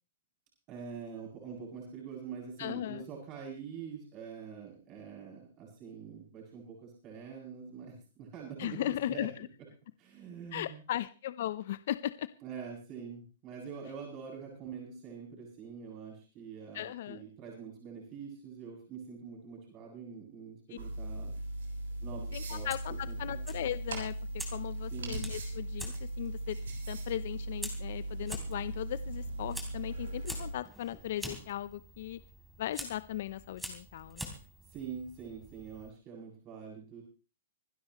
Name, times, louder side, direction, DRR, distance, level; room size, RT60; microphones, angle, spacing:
voice 1, 0.7-9.3 10.0-10.8 12.4-21.4 22.0-22.7 23.1-23.6 24.9-25.2 34.7-37.0, right 6 dB, 30° right, -2 dB, 7.8 m, -45 dB
voice 2, 2.6-3.0 8.6-9.5 10.5-12.3 16.7-17.2 22.3-24.1 24.5-26.6 26.9-32.2 32.6-34.3, left 12 dB, 60° left, 14 dB, 0.8 m, -37 dB
sound 1, 20.8-30.5, right 1 dB, 80° right, 7.1 m, -38 dB
Fire, 22.5-35.9, equal, 5° right, 3.6 m, -47 dB
26.0 x 12.0 x 3.2 m, 0.34 s
hypercardioid pair, 135°, 0 cm